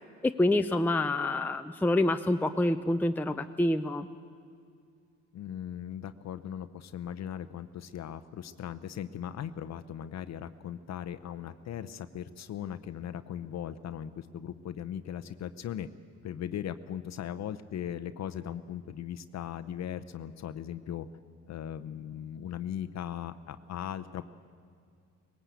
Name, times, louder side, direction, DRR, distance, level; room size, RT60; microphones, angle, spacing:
voice 1, 0.2-4.1, left 1 dB, 5° left, 7 dB, 0.6 m, -27 dB
voice 2, 5.3-15.9 16.2-21.1 21.5-24.3, left 9 dB, 60° left, 10 dB, 0.8 m, -38 dB
19.5 x 17.0 x 8.4 m, 2.3 s
cardioid pair, 90°, 30 cm